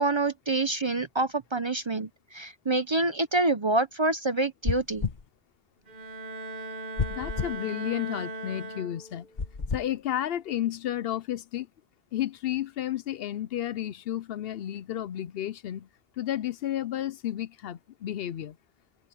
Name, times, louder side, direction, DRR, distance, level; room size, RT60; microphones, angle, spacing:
voice 1, 0.0-5.0, right 2 dB, 30° right, 0.6 m, -27 dB
sound 1, 4.6-5.2 7.0-7.6 9.4-9.9, left 5 dB, 45° left, 1.3 m, -30 dB
Bowed string instrument, 5.9-9.4, right 2 dB, 55° right, 2.9 m, -38 dB
voice 2, 7.1-9.3 9.7-11.7 12.1-15.9 16.2-18.6, left 12 dB, 70° left, 0.8 m, -32 dB
omnidirectional pair, 1.1 m